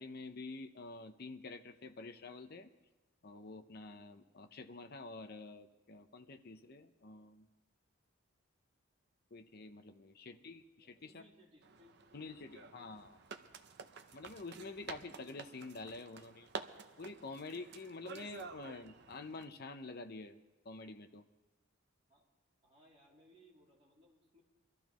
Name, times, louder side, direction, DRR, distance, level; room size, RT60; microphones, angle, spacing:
voice 1, 0.0-2.7 3.2-7.5 9.3-11.2 12.1-13.1 14.1-16.5 17.0-20.4 20.6-21.2, left 3 dB, 50° left, 8 dB, 0.7 m, -48 dB
voice 2, 10.7-13.0 22.1-22.3 22.6-24.4, left 1 dB, 30° right, -5 dB, 2.9 m, -66 dB
sound 1, 11.6-19.4, right 5 dB, 55° right, 0.7 m, -50 dB
24.0 x 13.0 x 3.1 m, 1.1 s
head